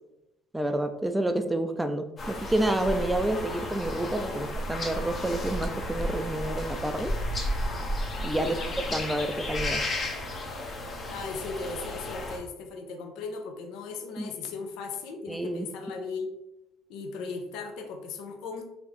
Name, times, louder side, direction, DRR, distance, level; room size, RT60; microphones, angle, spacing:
voice 1, 0.5-7.1 8.2-8.5 8.9-9.8 14.2-14.3 15.3-15.7, right 1 dB, 10° right, 7 dB, 0.3 m, -29 dB
sound 1, 2.2-12.4, left 1 dB, 40° left, 0.8 m, -33 dB
voice 2, 8.3-8.7 11.1-16.3 16.9-18.6, left 4 dB, 70° left, 4 dB, 0.4 m, -37 dB
3.0 x 2.5 x 3.1 m, 0.90 s
hypercardioid pair, 65°, 0 cm